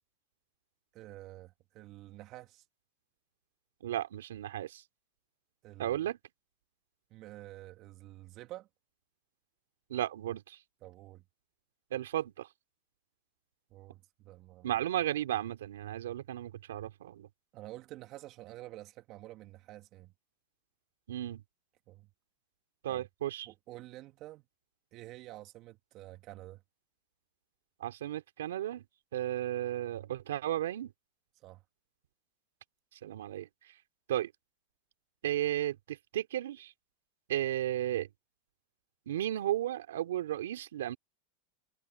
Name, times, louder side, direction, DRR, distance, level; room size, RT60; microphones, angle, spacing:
voice 1, 0.9-2.6 5.6-5.9 7.1-8.7 10.8-11.2 13.7-14.7 17.5-20.1 21.9-22.1 22.9-23.0 23.5-24.4 24.9-26.6 31.4-31.6, right 16 dB, 45° right, 2.5 m, -49 dB
voice 2, 3.8-4.8 5.8-6.2 9.9-10.6 11.9-12.5 14.6-17.3 21.1-21.4 22.8-23.5 27.8-28.8 29.1-30.9 33.0-33.5 34.1-34.3 35.2-36.7 37.3-38.1 39.1-41.0, right 12 dB, 85° right, 3.1 m, -34 dB
hypercardioid pair, 115°, 0 cm